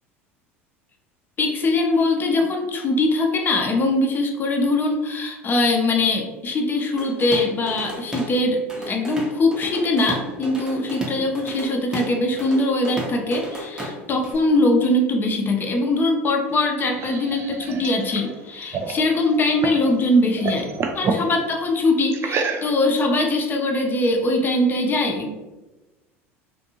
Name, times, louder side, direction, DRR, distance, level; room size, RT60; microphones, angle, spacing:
voice 1, 1.4-20.7 20.9-25.3, left 2 dB, 30° left, 2 dB, 0.5 m, -22 dB
Drum kit / Drum, 7.0-8.4 8.7-14.4, equal, 10° right, 0.7 m, -33 dB
sound 1, 16.5-19.9 20.2-21.3 22.1-23.0, right 4 dB, 35° right, 0.3 m, -29 dB
2.6 x 2.5 x 2.8 m, 1.1 s
figure-of-eight pair, 70°, 7 cm